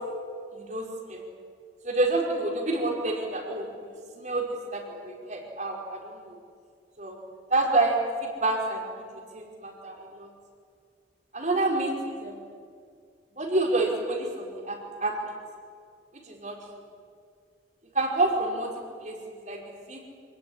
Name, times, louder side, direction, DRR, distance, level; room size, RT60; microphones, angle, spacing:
voice 1, 0.5-1.2 1.8-6.4 7.0-7.2 7.5-10.3 11.3-12.4 13.4-15.2 16.1-16.6 17.9-18.7 19.0-19.2 19.4-20.0, right 2 dB, 40° right, 1 dB, 5.2 m, -28 dB
27.5 x 19.0 x 9.9 m, 2.2 s
head